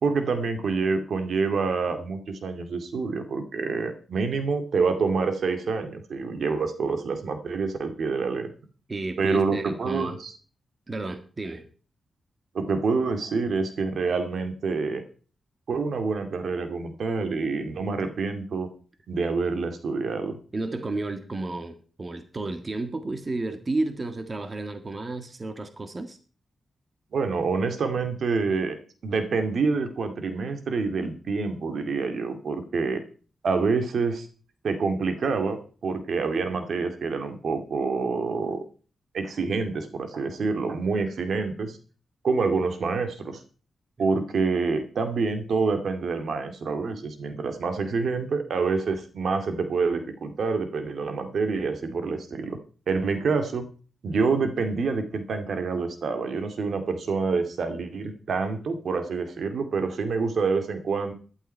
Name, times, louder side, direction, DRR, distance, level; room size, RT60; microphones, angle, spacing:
voice 1, 0.0-8.5 9.2-10.3 12.5-15.0 15.7-18.7 19.1-20.4 27.1-28.8 29.0-33.0 33.4-34.3 34.6-38.6 39.1-41.8 42.2-43.4 44.0-52.6 52.9-53.7 54.0-61.1, right 4 dB, 70° right, 7 dB, 2.3 m, -27 dB
voice 2, 8.9-10.2 10.9-11.6 20.5-26.2, right 2 dB, 30° right, 8 dB, 1.7 m, -32 dB
14.5 x 11.5 x 4.5 m, 0.39 s
wide cardioid pair, 100°, 0 cm